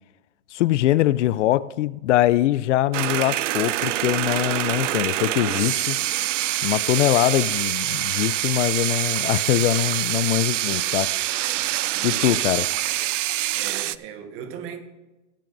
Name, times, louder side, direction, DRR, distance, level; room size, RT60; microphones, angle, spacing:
voice 1, 0.5-6.0 6.6-11.1 12.0-12.7, left 14 dB, 75° left, 0.5 m, -22 dB
sound 1, 2.9-14.0, right 14 dB, 85° right, 0.5 m, -25 dB
sound 2, 3.8-13.0, right 6 dB, 60° right, 1.8 m, -50 dB
voice 2, 11.9-12.7 13.5-14.8, right 7 dB, 35° right, 1.3 m, -38 dB
19.0 x 9.2 x 2.6 m
hypercardioid pair, 135°, 36 cm